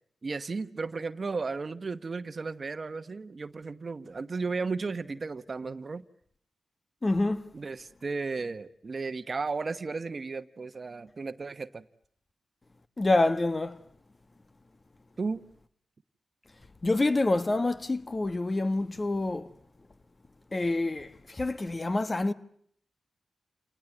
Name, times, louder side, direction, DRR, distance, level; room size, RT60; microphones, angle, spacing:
voice 1, 0.2-6.0 7.5-11.8 15.2-15.4, right 4 dB, 50° right, 1.1 m, -34 dB
voice 2, 7.0-7.5 13.0-13.8 16.8-19.5 20.5-22.3, left 2 dB, 35° left, 1.4 m, -27 dB
29.0 x 19.5 x 9.3 m
cardioid pair, 50°, 0 cm